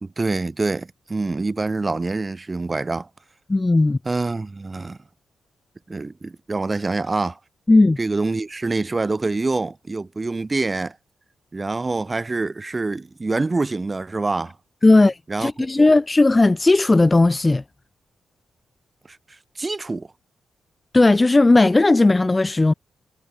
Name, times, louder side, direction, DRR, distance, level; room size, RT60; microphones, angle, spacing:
voice 1, 0.0-3.1 4.1-5.0 5.9-7.4 8.0-11.0 11.5-14.5 15.3-15.9 19.6-20.1, right 3 dB, 25° right, 2.1 m, -25 dB
voice 2, 3.5-4.0 7.7-8.0 14.8-17.6 20.9-22.7, left 2 dB, 20° left, 1.8 m, -16 dB
cardioid pair, 110°, 0 cm